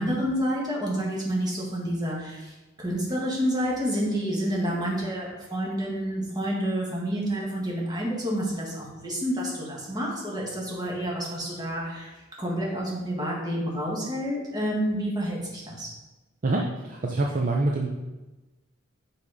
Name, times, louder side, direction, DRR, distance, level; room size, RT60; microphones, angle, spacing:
voice 1, 0.0-12.1 12.4-15.9, equal, 20° right, -4 dB, 1.6 m, -29 dB
voice 2, 16.4-17.9, right 2 dB, 40° right, 0 dB, 0.5 m, -25 dB
5.6 x 4.2 x 4.8 m, 1.1 s
head